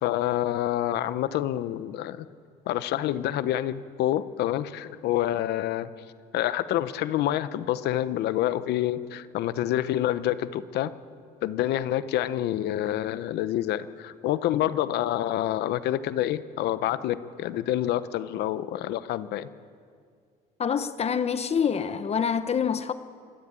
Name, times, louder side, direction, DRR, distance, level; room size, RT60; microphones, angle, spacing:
voice 1, 0.0-2.3 2.7-5.9 6.3-10.9 11.4-19.5, left 13 dB, 80° left, 0.9 m, -27 dB
voice 2, 20.6-22.9, left 7 dB, 40° left, 0.9 m, -26 dB
25.5 x 12.5 x 9.0 m
cardioid pair, 110°, 17 cm